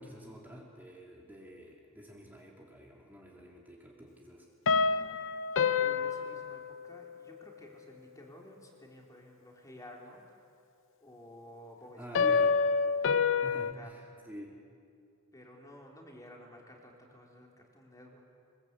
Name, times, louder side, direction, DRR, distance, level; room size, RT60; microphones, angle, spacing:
voice 1, 0.0-4.5 11.9-12.6 13.4-14.6, equal, 10° right, -2 dB, 3.0 m, -48 dB
sound 1, 4.7-7.3 12.2-13.7, left 5 dB, 60° left, 0.7 m, -28 dB
voice 2, 5.8-10.3 11.0-12.4 13.7-13.9 15.3-18.2, left 1 dB, 15° left, -1 dB, 3.7 m, -52 dB
24.0 x 22.0 x 8.3 m, 2.4 s
head